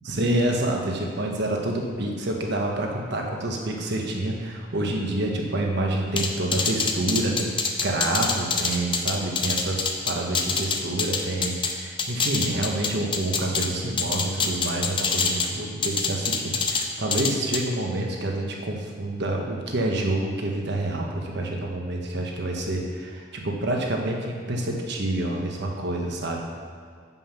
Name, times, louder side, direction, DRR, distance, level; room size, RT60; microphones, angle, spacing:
voice 1, 0.1-7.5 7.8-26.4, right 1 dB, 60° right, 0 dB, 1.2 m, -27 dB
sound 1, 6.2-11.7 12.0-13.7 14.0-15.5 15.8-16.8 17.1-17.6, left 5 dB, 25° left, 0.6 m, -25 dB
7.7 x 5.6 x 5.8 m, 2.1 s
head